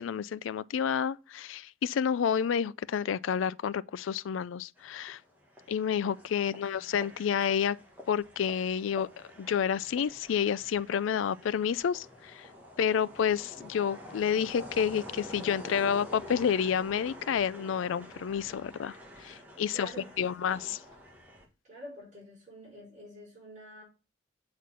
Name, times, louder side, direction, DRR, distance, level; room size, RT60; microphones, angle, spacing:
voice 1, 0.0-5.2 5.7-7.8 8.1-9.1 9.4-12.5 12.8-19.9 20.2-20.8, left 7 dB, 80° left, 0.4 m, -29 dB
sound 1, 4.8-21.5, left 1 dB, 10° right, 1.7 m, -47 dB
voice 2, 6.3-6.8 19.7-20.7 21.6-23.8, equal, 40° right, 5.6 m, -48 dB
8.3 x 4.2 x 6.2 m
head